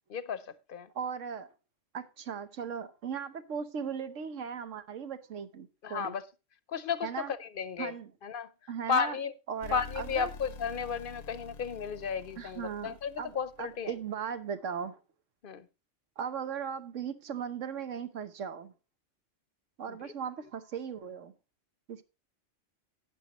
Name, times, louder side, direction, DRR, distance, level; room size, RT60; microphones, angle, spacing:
voice 1, 0.1-0.9 5.8-6.2 6.7-7.9 8.2-8.5 8.9-9.3 9.7-13.9 15.4-15.7 19.9-20.1, left 6 dB, 50° left, 0.8 m, -34 dB
voice 2, 0.9-1.5 1.9-6.1 7.0-7.3 7.8-8.1 8.7-9.2 9.5-10.3 12.4-15.0 16.2-18.7 19.8-21.3 21.9-22.0, right 7 dB, 80° right, 1.3 m, -38 dB
sound 1, 9.6-13.9, left 4 dB, 75° left, 1.0 m, -47 dB
12.0 x 9.4 x 3.0 m
omnidirectional pair, 1.3 m